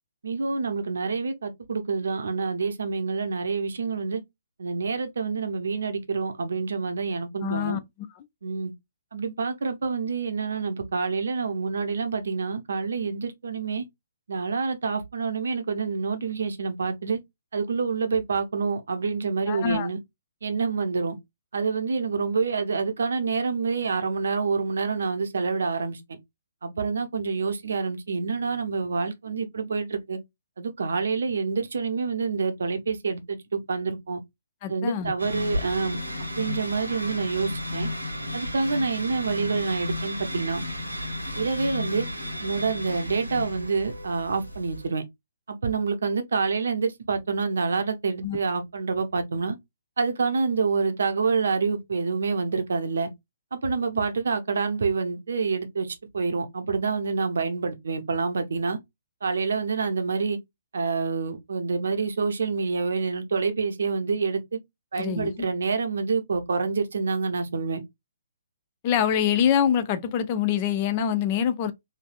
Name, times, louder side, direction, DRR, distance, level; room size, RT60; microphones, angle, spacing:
voice 1, 0.2-4.2 4.6-7.8 8.4-8.7 9.1-13.8 14.3-17.2 17.5-20.0 20.4-21.2 21.5-26.2 26.6-30.2 30.6-34.2 34.7-36.0 36.4-37.9 38.3-40.6 41.4-42.1 42.4-45.0 45.5-49.6 50.0-53.1 53.5-58.8 59.2-60.4 60.7-64.6 64.9-67.8, right 4 dB, 60° right, 0.7 m, -27 dB
voice 2, 7.4-7.8 19.5-19.9 34.6-35.1 48.2-48.4 65.0-65.5 68.8-71.7, left 8 dB, 30° left, 0.4 m, -25 dB
sound 1, 35.2-44.9, left 1 dB, 85° right, 0.9 m, -33 dB
3.2 x 2.6 x 2.4 m
figure-of-eight pair, 130°, 0 cm